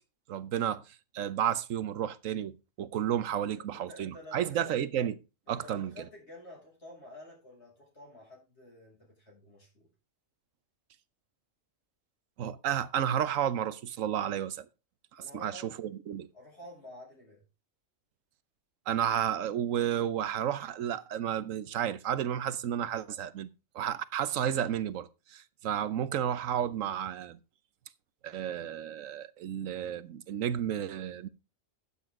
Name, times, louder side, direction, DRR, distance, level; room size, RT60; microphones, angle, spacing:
voice 1, 0.3-0.8 1.1-5.2 5.5-6.0 12.4-14.7 15.1-16.3 18.9-23.5 23.7-27.4 28.2-31.3, right 10 dB, 80° right, 1.2 m, -32 dB
voice 2, 3.4-4.7 5.5-9.9 15.2-15.7 16.3-17.4, left 1 dB, 55° left, 6.7 m, -50 dB
12.0 x 8.6 x 3.7 m
omnidirectional pair, 1.3 m